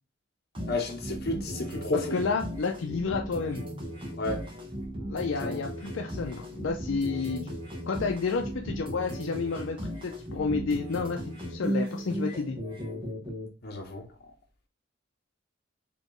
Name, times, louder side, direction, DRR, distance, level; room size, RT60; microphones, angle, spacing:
sound 1, 0.5-13.5, equal, 25° right, 1.1 m, -36 dB
voice 1, 0.7-2.2 4.2-4.5 5.4-5.6 13.6-14.1, left 2 dB, 55° left, 0.9 m, -32 dB
voice 2, 2.1-3.6 5.1-7.6 7.8-12.6, left 4 dB, 80° left, 0.5 m, -31 dB
4.2 x 2.9 x 3.0 m
head